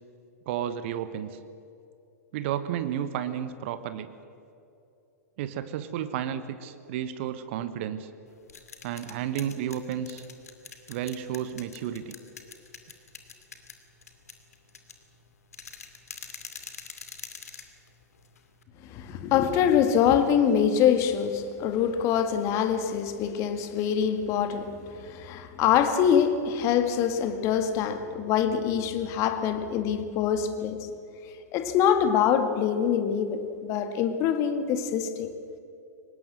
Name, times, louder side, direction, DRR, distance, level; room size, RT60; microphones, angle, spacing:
voice 1, 0.5-1.4 2.3-4.1 5.4-8.1 8.8-10.2 10.9-12.2, right 10 dB, 45° right, 1.2 m, -32 dB
sound 1, 8.3-18.6, left 6 dB, 65° left, 2.5 m, -46 dB
voice 2, 18.8-30.9 31.5-35.3, left 8 dB, 35° left, 1.9 m, -24 dB
24.0 x 19.5 x 7.7 m
figure-of-eight pair, 100°, 9 cm